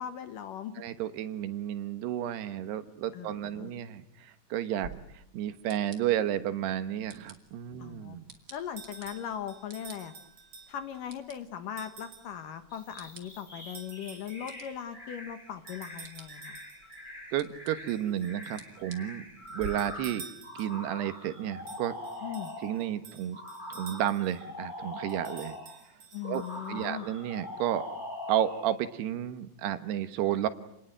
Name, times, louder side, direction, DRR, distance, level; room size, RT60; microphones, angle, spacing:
voice 1, 0.0-0.7 3.1-3.7 7.8-8.2 8.5-10.1 10.7-16.6 22.2-22.5 26.1-27.1, left 9 dB, 65° left, 10 dB, 2.4 m, -39 dB
voice 2, 0.8-8.3 17.3-19.3 19.5-20.2 20.6-22.0 22.6-23.4 23.7-25.6 26.2-26.4 26.7-27.9 28.3-30.5, right 11 dB, 80° right, 11 dB, 3.3 m, -32 dB
sound 1, 4.8-19.7, right 2 dB, 30° right, 2.4 m, -53 dB
sound 2, 8.8-11.0 11.8-12.4 13.7-14.8 15.7-17.1 17.9-18.7 19.5-20.9 21.7-24.4 25.1-26.9, right 5 dB, 55° right, 3.8 m, -50 dB
sound 3, 12.7-22.9 23.3-25.8 26.2-28.8, left 1 dB, 10° left, 4.5 m, -43 dB
29.0 x 19.5 x 9.0 m, 0.80 s
omnidirectional pair, 4.8 m